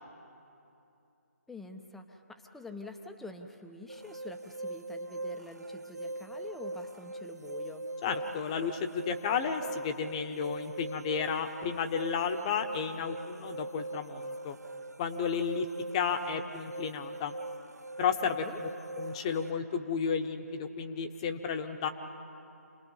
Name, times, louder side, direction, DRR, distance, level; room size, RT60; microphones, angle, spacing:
voice 1, 1.5-7.9 18.2-18.6, left 2 dB, ahead, 5 dB, 0.7 m, -46 dB
sound 1, 3.9-19.5, right 2 dB, 75° right, 0.6 m, -41 dB
voice 2, 8.0-14.6 15.0-15.7 15.9-17.3 18.0-18.7 19.0-21.9, left 6 dB, 20° left, 7 dB, 1.0 m, -32 dB
29.0 x 20.0 x 5.5 m, 2.8 s
figure-of-eight pair, 150°, 9 cm